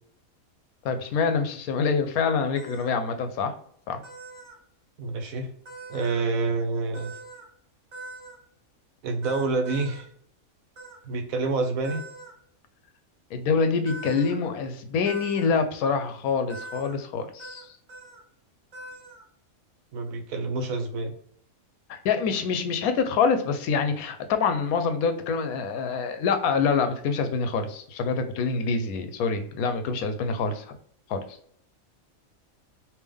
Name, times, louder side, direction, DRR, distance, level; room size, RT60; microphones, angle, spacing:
voice 1, 0.8-3.5 3.9-4.0 13.3-17.7 21.9-30.6 31.1-31.2, left 5 dB, 85° left, 8 dB, 1.1 m, -26 dB
sound 1, 2.6-2.9 4.0-4.6 5.7-6.2 6.9-7.5 7.9-8.4 9.2-10.0 10.8-11.0 11.8-12.3 13.9-14.3 15.1-15.5 16.5-17.0 17.4-17.6 17.9-18.2 18.7-19.2, right 2 dB, 50° right, 1.6 m, -42 dB
voice 2, 5.0-5.5 5.9-7.1 9.0-10.1 11.0-12.0 19.9-21.1, right 3 dB, 75° right, 5 dB, 1.1 m, -27 dB
3.5 x 2.8 x 3.4 m, 0.64 s
omnidirectional pair, 1.5 m